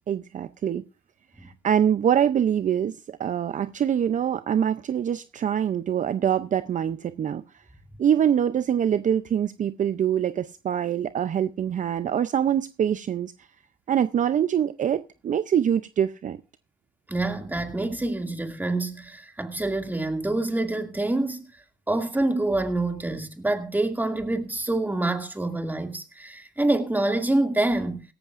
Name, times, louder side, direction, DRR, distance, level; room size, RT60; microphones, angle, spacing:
voice 1, 0.1-0.8 1.4-7.4 8.0-13.3 13.9-16.4, right 9 dB, 50° right, 0.5 m, -24 dB
voice 2, 17.1-21.4 21.9-28.0, right 2 dB, 10° right, 2.3 m, -26 dB
17.0 x 14.0 x 2.5 m
cardioid pair, 95°, 17 cm